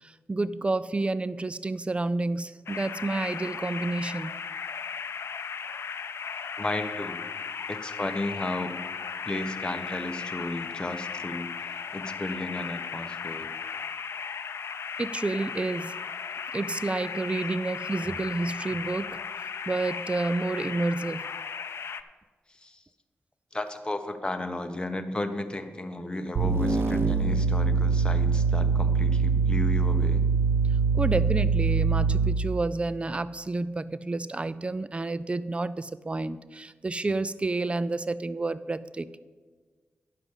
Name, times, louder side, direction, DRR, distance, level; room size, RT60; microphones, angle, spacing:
voice 1, 0.0-4.4 15.0-16.0 16.5-19.2 19.7-21.3 30.9-39.2, right 2 dB, 25° right, 16 dB, 0.4 m, -30 dB
sound 1, 2.7-22.0, left 6 dB, 80° left, 0.5 m, -36 dB
voice 2, 6.6-7.2 7.7-8.8 9.2-13.5 22.6-22.8 23.5-30.2, left 2 dB, 20° left, 6 dB, 1.0 m, -34 dB
sound 2, 26.4-32.5, right 5 dB, 65° right, 0.7 m, -23 dB
10.5 x 5.1 x 8.1 m, 1.4 s
cardioid pair, 70°, 4 cm